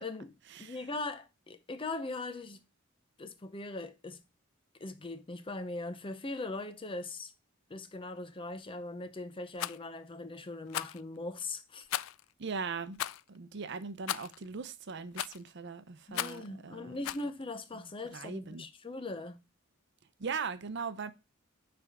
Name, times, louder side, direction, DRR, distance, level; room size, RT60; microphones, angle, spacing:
voice 1, 0.0-0.3 0.6-2.6 3.2-4.2 4.8-7.3 7.7-11.9 16.1-19.4, left 2 dB, 25° left, 0.6 m, -40 dB
Rattle, 9.5-9.8 10.7-11.0 11.9-12.2 13.0-13.2 14.1-14.4 15.2-15.5 16.1-16.5 17.0-17.3, left 12 dB, 80° left, 0.3 m, -36 dB
voice 2, 12.4-13.0 13.3-17.0 18.1-18.6 20.2-21.1, right 5 dB, 60° right, 0.6 m, -39 dB
9.9 x 3.5 x 3.6 m
head